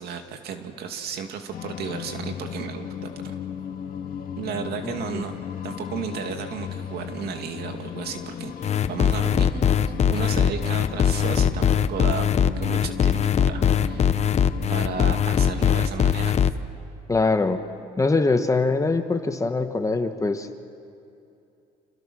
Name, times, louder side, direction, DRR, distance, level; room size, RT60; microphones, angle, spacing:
voice 1, 0.0-3.4 4.4-8.5 8.9-9.6 10.1-14.2 14.7-16.4, right 6 dB, 70° right, 5 dB, 2.5 m, -34 dB
another drone, 1.5-15.9, left 8 dB, 55° left, 2.1 m, -35 dB
voice 2, 4.8-5.2 17.1-17.6 18.0-20.5, left 3 dB, 20° left, 7 dB, 1.4 m, -23 dB
sound 1, 8.6-16.5, left 8 dB, 40° left, 0.9 m, -21 dB
30.0 x 27.5 x 6.3 m, 2.6 s
cardioid pair, 110°, 17 cm